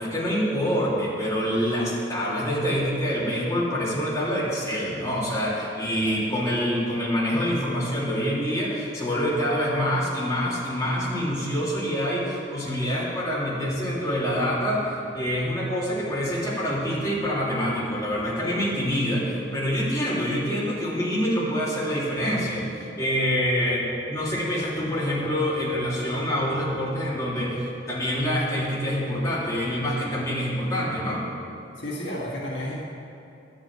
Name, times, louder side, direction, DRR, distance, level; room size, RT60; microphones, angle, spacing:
voice 1, 0.0-22.7 23.0-31.2, equal, 15° left, -8 dB, 3.1 m, -26 dB
voice 2, 5.8-6.3 31.8-32.8, equal, 65° left, -5 dB, 1.8 m, -33 dB
10.5 x 6.5 x 8.8 m, 2.7 s
head